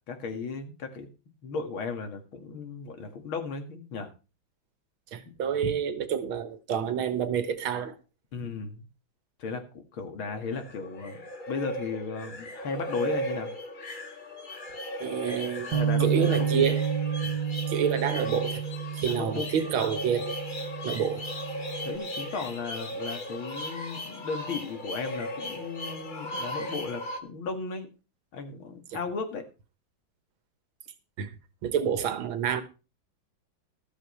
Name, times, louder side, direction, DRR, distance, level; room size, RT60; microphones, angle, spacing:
voice 1, 0.1-1.1 1.4-4.1 5.3-5.4 8.3-8.9 9.4-11.2 11.5-13.5 15.7-16.7 19.1-19.5 21.8-27.9 28.3-29.5, left 4 dB, 80° left, 2.7 m, -35 dB
voice 2, 5.1-8.0 15.0-15.7 16.0-16.8 17.2-17.3 17.7-18.6 18.9-20.4 20.8-21.3 28.9-29.0 31.2-31.3 31.6-32.6, right 8 dB, 80° right, 2.1 m, -28 dB
sound 1, 10.2-27.2, equal, 30° left, 1.1 m, -37 dB
Bass guitar, 15.7-22.0, right 8 dB, 65° right, 1.2 m, -31 dB
13.0 x 13.0 x 3.2 m
omnidirectional pair, 2.2 m